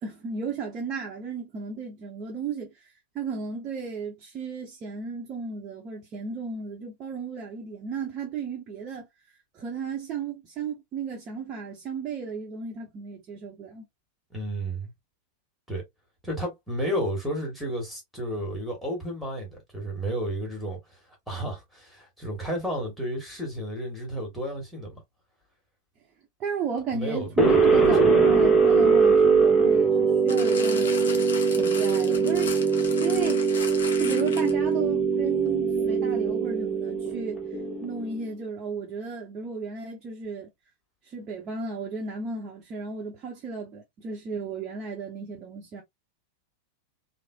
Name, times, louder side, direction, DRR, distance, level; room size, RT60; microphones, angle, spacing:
voice 1, 0.0-2.9 3.1-9.1 9.5-13.9 26.4-32.5 33.0-33.5 34.0-37.4 37.8-40.5 41.0-45.8, right 5 dB, 30° right, 0.8 m, -34 dB
voice 2, 14.3-14.9 15.7-15.8 16.2-21.0 21.3-25.0 26.9-28.1, equal, ahead, 1.5 m, -32 dB
sound 1, 27.4-38.2, right 5 dB, 15° left, 0.8 m, -22 dB
sound 2, 30.3-34.7 35.5-35.6, left 4 dB, 60° left, 0.6 m, -37 dB
3.1 x 2.0 x 2.3 m
figure-of-eight pair, 90°, 0 cm